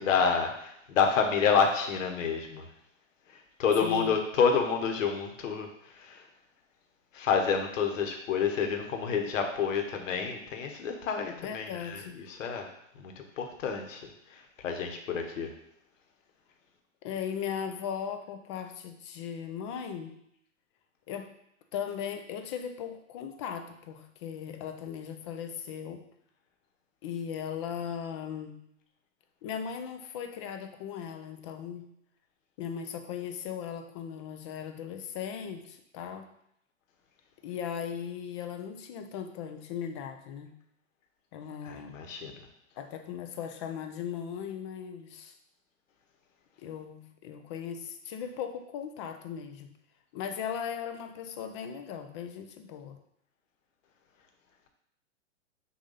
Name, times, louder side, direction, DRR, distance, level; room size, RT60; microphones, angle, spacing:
voice 1, 0.0-2.7 3.6-5.7 6.0-6.2 7.1-12.0 12.3-12.7 13.0-14.0 14.6-15.5 41.7-42.3, left 6 dB, 75° left, 4 dB, 1.2 m, -28 dB
voice 2, 3.8-4.2 11.4-12.2 17.0-20.2 21.1-21.3 21.7-26.0 27.0-28.6 29.4-31.9 32.6-36.3 37.4-40.5 41.3-41.9 42.8-45.3 46.6-49.7 50.1-53.0, left 8 dB, 25° left, 6 dB, 0.4 m, -38 dB
6.4 x 2.6 x 5.5 m, 0.76 s
hypercardioid pair, 145°, 39 cm